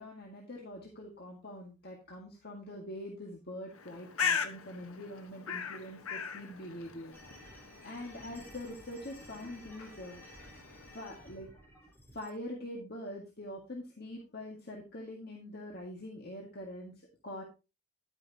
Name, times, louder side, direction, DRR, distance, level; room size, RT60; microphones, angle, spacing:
voice 1, 0.0-7.1 7.8-10.4 10.9-11.5 12.1-17.4, left 1 dB, 45° left, -1 dB, 2.0 m, -44 dB
Bird, 3.7-11.3, left 6 dB, 70° left, 1.3 m, -40 dB
sound 1, 7.1-12.3, equal, 10° left, 4.2 m, -54 dB
11.0 x 9.1 x 2.9 m, 0.28 s
head